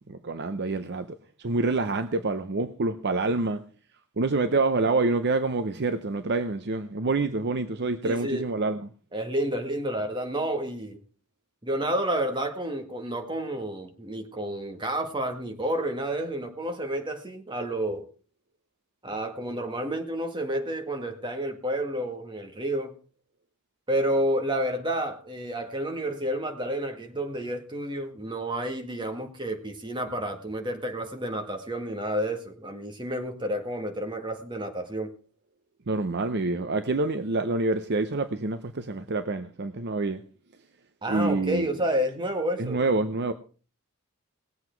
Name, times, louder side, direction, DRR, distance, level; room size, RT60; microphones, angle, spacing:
voice 1, 0.1-1.1 1.4-3.6 4.2-8.8 35.9-40.2 41.1-41.7 42.6-43.3, right 3 dB, 50° right, 0.7 m, -27 dB
voice 2, 8.0-8.5 9.1-11.0 11.6-18.1 19.0-23.0 23.9-35.1 41.0-42.8, right 1 dB, 20° right, 1.7 m, -30 dB
19.0 x 8.0 x 4.5 m
head